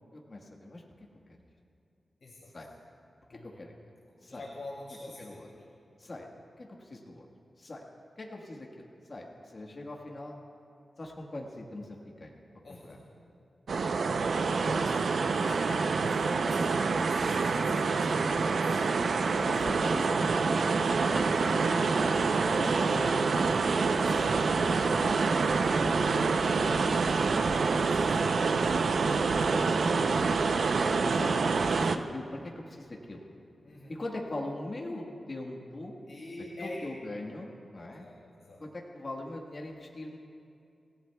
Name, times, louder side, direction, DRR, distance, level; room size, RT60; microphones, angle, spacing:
voice 1, 0.1-0.8 2.5-2.7 3.3-3.7 4.2-4.4 5.2-5.5 6.0-6.3 6.6-7.3 7.6-7.8 8.2-8.8 9.1-10.4 11.0-12.3 12.7-13.0 14.6-14.8 19.4-24.5 24.8-27.4 29.4-30.2 30.8-33.2 33.9-36.0 36.6-38.1 38.6-40.2, left 2 dB, 40° left, -1 dB, 1.4 m, -41 dB
voice 2, 2.2-2.5 3.3-3.6 4.3-5.7 12.6-13.1 14.6-15.0 15.3-18.8 22.8-23.0 23.9-24.2 24.7-25.0 27.5-28.2 28.6-29.1 33.6-34.0 36.1-36.8 38.0-38.6, left 2 dB, 65° left, -4 dB, 2.3 m, -46 dB
sound 1, 13.7-32.0, right 4 dB, 75° right, 0.6 m, -26 dB
27.0 x 16.5 x 2.3 m, 2.6 s
wide cardioid pair, 130°, 0 cm